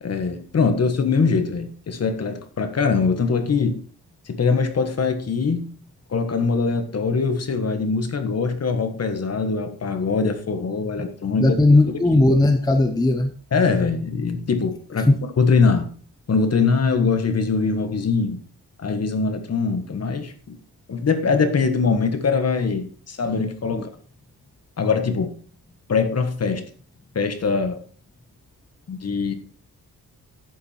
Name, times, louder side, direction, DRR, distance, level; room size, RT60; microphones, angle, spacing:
voice 1, 0.0-3.8 4.3-5.7 6.1-11.6 13.5-15.1 15.4-15.9 16.3-18.4 18.8-20.6 20.9-23.9 24.8-25.3 25.9-26.6 27.1-27.8 28.9-29.3, left 4 dB, 40° left, 8 dB, 1.5 m, -22 dB
voice 2, 11.4-13.3 15.1-15.2 23.7-23.9, left 2 dB, 10° left, 7 dB, 0.7 m, -17 dB
11.0 x 8.7 x 4.3 m, 0.43 s
wide cardioid pair, 175°, 38 cm